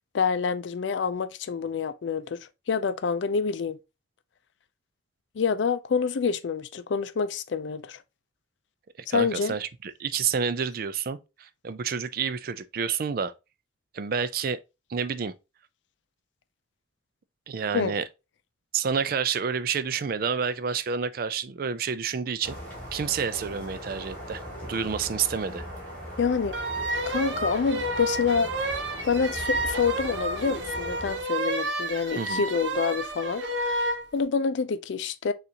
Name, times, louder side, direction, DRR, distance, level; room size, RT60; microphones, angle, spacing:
voice 1, 0.1-3.8 5.4-8.0 9.1-9.5 17.7-17.9 26.2-26.6 27.1-28.7 29.0-35.3, left 5 dB, 80° left, 0.4 m, -27 dB
voice 2, 9.1-13.3 13.9-14.6 14.9-15.3 17.5-18.0 18.7-22.6 22.9-24.4 24.7-25.6 32.2-32.4, right 6 dB, 55° right, 0.4 m, -29 dB
sound 1, 22.4-31.2, equal, 10° left, 2.3 m, -39 dB
sound 2, 26.5-34.0, right 1 dB, 80° right, 0.8 m, -30 dB
6.7 x 2.5 x 2.8 m
head